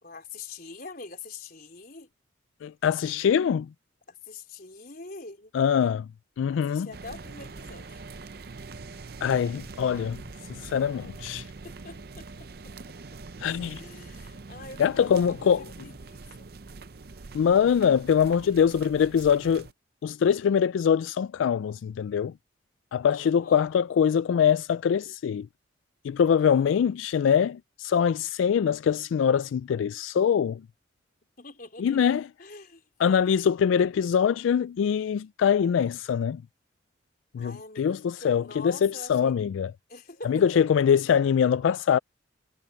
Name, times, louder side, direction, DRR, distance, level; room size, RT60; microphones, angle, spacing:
voice 1, 0.0-2.1 4.1-5.5 6.5-8.0 11.6-12.7 13.7-16.5 23.1-23.6 26.4-26.8 31.4-32.0 32.4-32.9 37.4-39.4 39.9-40.4, left 3 dB, 50° left, 4.1 m, -44 dB
voice 2, 2.6-3.7 5.5-6.1 6.4-6.9 9.2-10.2 10.5-11.5 13.4-13.8 14.8-15.6 17.3-19.7 20.0-22.3 22.9-25.5 26.0-30.6 31.8-32.3 33.0-36.4 37.3-39.7 40.2-42.0, left 7 dB, 80° left, 0.3 m, -23 dB
sound 1, 6.9-19.7, right 3 dB, 50° right, 0.6 m, -44 dB
head